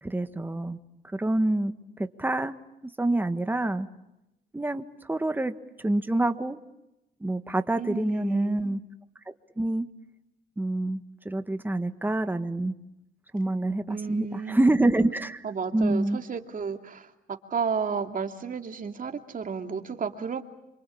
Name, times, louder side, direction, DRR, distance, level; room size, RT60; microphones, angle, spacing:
voice 1, 0.0-0.8 1.1-1.7 2.0-2.5 3.0-3.9 4.5-5.5 5.8-6.6 7.2-8.8 9.6-9.9 10.6-12.7 13.3-15.4 15.7-16.2, right 1 dB, 10° right, 9 dB, 1.6 m, -26 dB
voice 2, 7.8-8.7 13.9-15.0 15.4-20.4, right 6 dB, 45° right, 5 dB, 2.7 m, -32 dB
27.0 x 25.5 x 8.6 m, 0.91 s
cardioid pair, 90°, 20 cm